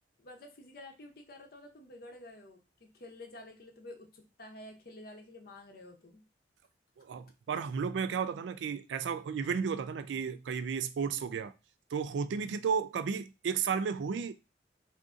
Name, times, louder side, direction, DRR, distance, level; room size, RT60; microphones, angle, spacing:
voice 1, 0.2-6.2, left 1 dB, 55° left, 0.7 m, -50 dB
voice 2, 7.0-11.5 11.9-14.3, right 6 dB, 85° right, 0.3 m, -33 dB
2.6 x 2.5 x 3.5 m
head